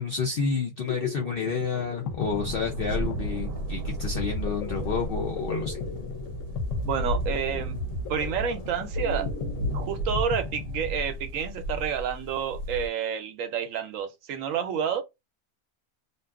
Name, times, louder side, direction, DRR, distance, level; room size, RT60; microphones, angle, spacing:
voice 1, 0.0-5.8, left 5 dB, 80° left, 0.5 m, -30 dB
sound 1, 0.6-11.4, left 4 dB, 65° left, 0.9 m, -36 dB
sound 2, 2.1-12.9, equal, 85° right, 1.1 m, -34 dB
voice 2, 6.8-7.8 8.1-9.3 9.7-15.0, right 8 dB, 70° right, 0.9 m, -29 dB
2.7 x 2.2 x 2.3 m
omnidirectional pair, 1.6 m